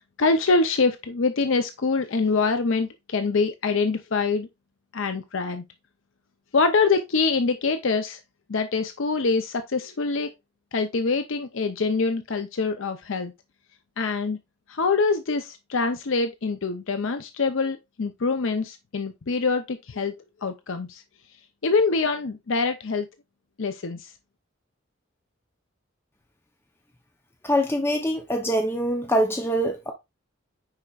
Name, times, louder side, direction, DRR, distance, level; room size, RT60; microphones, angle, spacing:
voice 1, 0.2-4.5 4.9-5.6 6.5-8.2 8.5-10.3 10.7-13.3 14.0-14.4 14.7-20.1 20.4-21.0 21.6-23.1 23.6-24.0, left 4 dB, 70° left, 0.6 m, -24 dB
voice 2, 27.4-29.9, equal, 10° left, 0.7 m, -24 dB
9.7 x 4.4 x 2.4 m
head